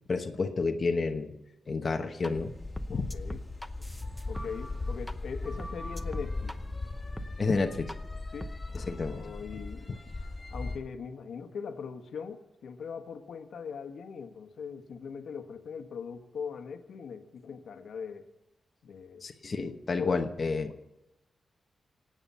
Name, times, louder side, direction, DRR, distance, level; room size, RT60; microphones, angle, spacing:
voice 1, 0.1-1.3 1.7-2.5 2.9-3.1 7.4-7.9 8.7-9.2 19.2-20.7, left 4 dB, 35° left, 4 dB, 1.1 m, -30 dB
sound 1, 2.2-2.3 2.8-5.1 5.4-6.6 7.2-7.3 7.9-8.0 8.4-8.8, equal, ahead, 0.8 m, -41 dB
sound 2, 2.3-10.8, left 2 dB, 15° left, 2.4 m, -38 dB
voice 2, 2.9-3.4 3.8-3.9 4.3-6.6 8.3-10.0 10.5-18.3 18.8-19.2 20.0-20.2, left 6 dB, 90° left, 6 dB, 1.5 m, -40 dB
26.0 x 9.0 x 5.7 m, 0.92 s
wide cardioid pair, 165°, 0 cm